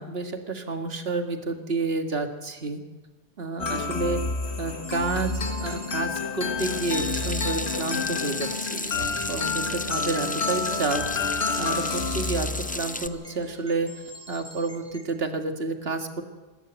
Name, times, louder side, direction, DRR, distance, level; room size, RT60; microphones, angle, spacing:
voice 1, 0.0-2.8 3.4-4.2 4.6-5.3 5.6-11.0 11.3-12.5 12.7-13.9 14.3-16.2, right 3 dB, 70° right, 5 dB, 2.1 m, -30 dB
sound 1, 3.6-13.3, left 4 dB, 85° left, 2.3 m, -29 dB
sound 2, 4.4-4.5 4.8-6.0 7.1-7.7 8.3-9.5 9.9-15.1, equal, 5° right, 2.2 m, -46 dB
Water tap faucet / Sink (filling or washing), 6.6-13.1, left 2 dB, 10° left, 0.4 m, -34 dB
27.0 x 13.5 x 8.1 m, 1.2 s
omnidirectional pair, 1.1 m